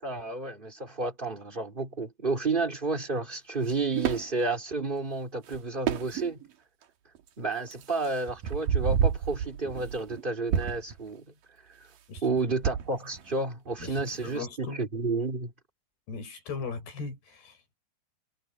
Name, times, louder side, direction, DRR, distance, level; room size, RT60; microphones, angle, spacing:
voice 1, 0.0-6.4 7.4-11.2 12.2-15.5, right 3 dB, 15° right, 2.3 m, -31 dB
sound 1, 3.6-4.3 5.5-5.6 5.9-6.5 7.2-7.3 7.7-10.2 10.5-11.0 12.2-13.4 13.7-14.0, right 8 dB, 60° right, 3.1 m, -30 dB
voice 2, 12.1-12.4 13.8-14.8 16.1-17.7, left 4 dB, 75° left, 7.3 m, -39 dB
omnidirectional pair, 4.6 m